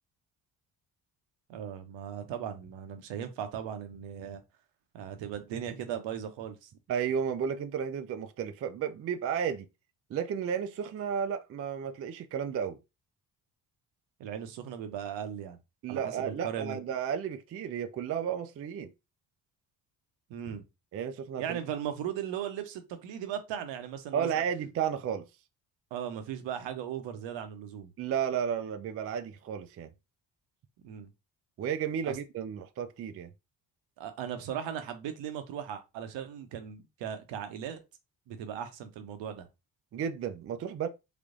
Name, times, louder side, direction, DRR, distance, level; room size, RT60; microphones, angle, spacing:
voice 1, 1.5-4.4 4.9-6.7 14.2-15.6 15.9-16.8 20.3-20.6 21.4-24.3 25.9-27.9 30.8-31.1 32.1-32.2 34.0-37.8 38.3-39.5, right 9 dB, 60° right, 0.8 m, -37 dB
voice 2, 6.9-9.7 10.1-12.8 15.8-18.9 20.9-21.6 24.1-25.3 28.0-29.9 31.6-33.3 39.9-40.9, right 8 dB, 30° right, 0.4 m, -33 dB
3.3 x 3.3 x 2.5 m
hypercardioid pair, 45°, 50 cm